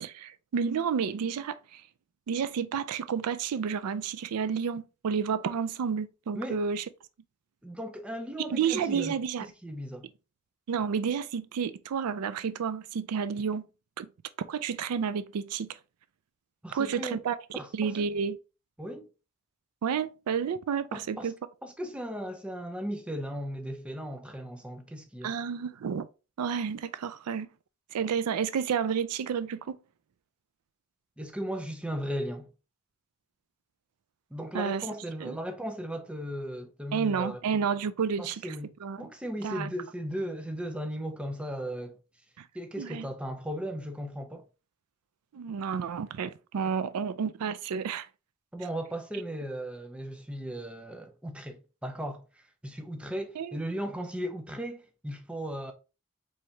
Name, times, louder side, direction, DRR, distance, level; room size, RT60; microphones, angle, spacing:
voice 1, 0.0-1.8 2.3-6.8 8.5-9.5 10.7-13.6 14.0-14.1 14.5-15.7 16.7-17.4 17.7-18.4 19.8-21.3 25.2-26.1 26.4-27.5 27.9-29.8 34.5-34.9 35.2-35.4 36.9-38.5 38.8-39.1 39.4-39.7 42.4-42.5 42.8-43.1 45.3-48.1 53.4-53.6, right 6 dB, 90° right, 0.4 m, -30 dB
voice 2, 7.6-10.1 16.6-17.2 17.5-18.1 18.8-19.1 20.9-21.3 21.6-25.3 31.2-32.5 34.3-37.4 38.2-42.0 42.5-44.4 48.5-55.7, equal, 5° right, 0.4 m, -37 dB
4.6 x 3.2 x 2.7 m
head